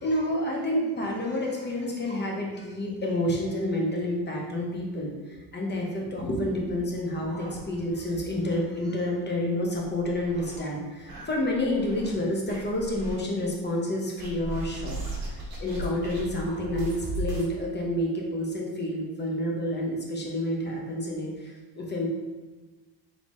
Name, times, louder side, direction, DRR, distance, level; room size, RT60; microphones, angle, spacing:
voice 1, 0.0-22.1, left 1 dB, 25° left, -1 dB, 0.9 m, -29 dB
sound 1, 6.7-8.1 8.5-8.6 8.9-9.0 9.6-10.6 11.1-12.1 12.5-13.2 14.2-17.5, right 2 dB, 55° right, 1.4 m, -37 dB
3.9 x 3.6 x 3.1 m, 1.2 s
cardioid pair, 120°, 42 cm